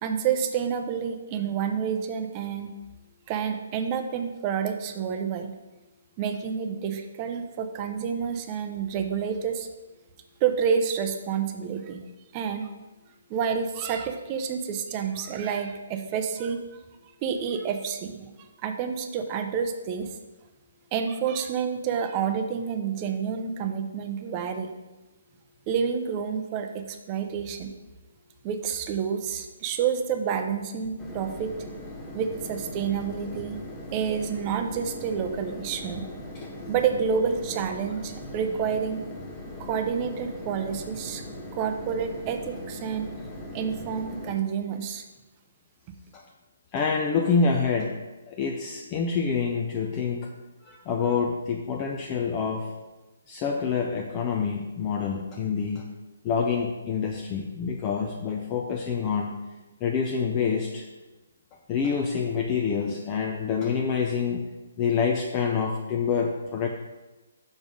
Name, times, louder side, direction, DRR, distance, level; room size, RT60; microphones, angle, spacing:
voice 1, 0.0-2.7 3.3-5.5 6.2-9.7 10.4-12.0 12.3-12.7 13.3-16.8 17.2-20.2 20.9-24.7 25.7-27.7 28.4-31.5 32.1-33.6 33.9-36.1 36.7-39.0 39.6-41.2 41.5-43.1 43.5-45.1, right 7 dB, 25° right, 6 dB, 0.6 m, -29 dB
sound 1, 31.0-44.3, left 1 dB, 5° left, 1.0 m, -40 dB
voice 2, 46.7-48.0 48.3-50.3 50.6-52.7 53.3-56.0 56.2-59.4 59.8-60.9 61.7-64.5 64.8-66.7, left 5 dB, 20° left, 1 dB, 0.5 m, -27 dB
6.2 x 5.3 x 5.2 m, 1.1 s
hypercardioid pair, 160°, 0 cm